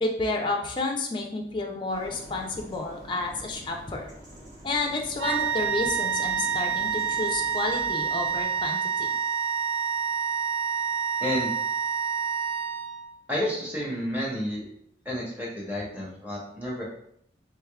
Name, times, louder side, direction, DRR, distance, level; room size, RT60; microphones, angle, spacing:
voice 1, 0.0-4.1 4.6-9.1, left 2 dB, 25° left, 2 dB, 0.4 m, -30 dB
sound 1, 1.9-8.5, equal, 45° right, 1.4 m, -47 dB
sound 2, 5.2-13.1, right 7 dB, 65° right, 0.7 m, -28 dB
voice 2, 11.2-11.5 13.3-14.7 15.0-16.8, left 1 dB, 10° right, -4 dB, 0.8 m, -30 dB
3.4 x 3.3 x 2.3 m, 0.70 s
head